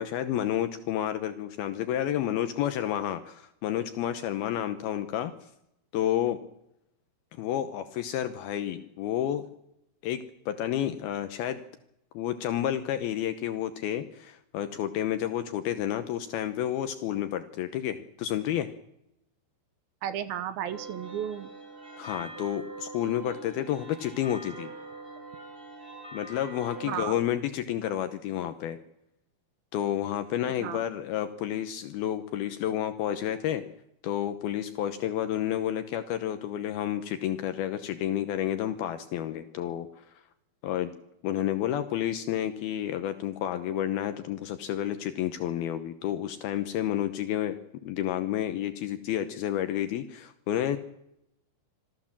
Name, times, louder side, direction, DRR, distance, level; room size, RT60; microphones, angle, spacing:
voice 1, 0.0-5.3 5.9-6.4 7.4-9.5 10.0-11.6 12.1-18.7 22.0-24.7 26.1-28.8 29.7-33.6 34.0-40.1 40.6-40.9 41.2-47.6 47.9-50.8, left 11 dB, 75° left, 9 dB, 2.7 m, -30 dB
voice 2, 20.0-21.5 26.9-27.2 30.6-30.8, right 10 dB, 70° right, 13 dB, 2.6 m, -33 dB
sound 1, 20.7-27.1, right 3 dB, 15° right, 2.7 m, -43 dB
27.0 x 16.0 x 7.4 m, 0.83 s
omnidirectional pair, 4.8 m